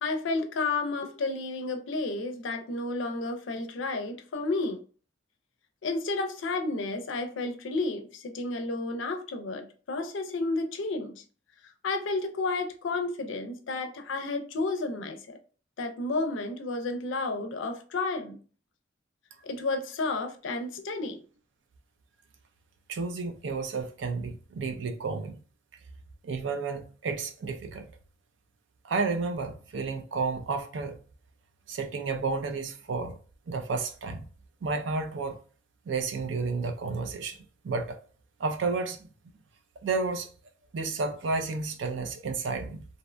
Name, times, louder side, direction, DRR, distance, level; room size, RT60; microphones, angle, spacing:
voice 1, 0.0-4.8 5.8-11.2 11.8-15.4 15.8-18.4 19.4-21.2, left 3 dB, 80° left, 0.4 m, -31 dB
voice 2, 22.9-25.4 26.2-27.9 28.8-31.0 31.7-33.2 33.5-34.3 34.6-35.4 35.9-37.4 37.6-38.0 38.4-39.1 39.8-40.3 40.7-42.9, right 4 dB, 75° right, 0.4 m, -31 dB
2.5 x 2.1 x 2.4 m
head